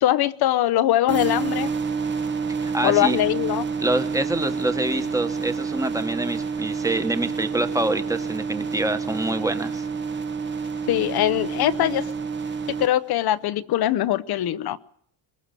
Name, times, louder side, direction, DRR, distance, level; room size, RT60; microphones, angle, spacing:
voice 1, 0.0-1.7 2.8-3.6 10.9-12.0 12.8-14.8, left 13 dB, 50° left, 15 dB, 0.9 m, -22 dB
sound 1, 1.1-12.9, right 5 dB, 20° right, 1.1 m, -28 dB
voice 2, 2.6-3.2 3.8-9.9, right 2 dB, 5° right, 9 dB, 1.4 m, -26 dB
22.0 x 21.0 x 6.8 m, 0.65 s
cardioid pair, 140°, 50 cm